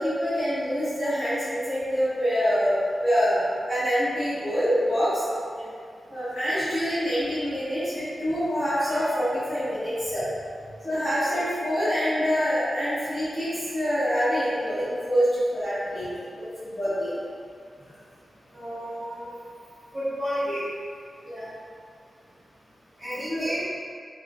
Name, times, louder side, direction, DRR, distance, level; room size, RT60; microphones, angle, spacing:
voice 1, 0.0-2.8 3.0-3.4 3.7-5.2 6.1-10.2 10.8-17.2 21.3-21.5 23.3-23.5, equal, 10° left, -14 dB, 1.0 m, -26 dB
voice 2, 18.5-19.3 19.9-20.7 23.0-23.6, equal, 25° right, -14 dB, 1.0 m, -31 dB
2.9 x 2.1 x 2.5 m, 2.2 s
wide cardioid pair, 165°, 0 cm